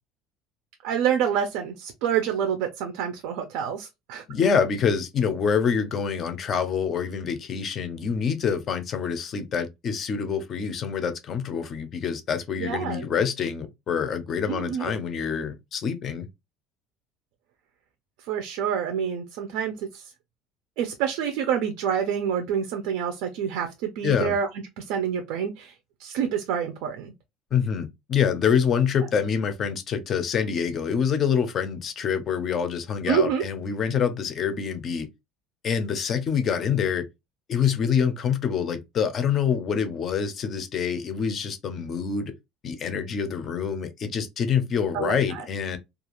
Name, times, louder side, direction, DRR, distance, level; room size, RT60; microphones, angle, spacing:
voice 1, 0.8-4.2 12.6-13.0 14.5-14.9 18.3-20.0 20.8-24.5 24.8-25.7 26.0-27.1 33.1-33.5 44.9-45.4, right 8 dB, 70° right, 0.5 m, -27 dB
voice 2, 4.3-16.3 24.0-24.3 27.5-35.1 35.6-37.0 37.5-42.3 42.6-45.8, left 7 dB, 30° left, 0.4 m, -26 dB
2.4 x 2.4 x 2.9 m
cardioid pair, 170°, 0 cm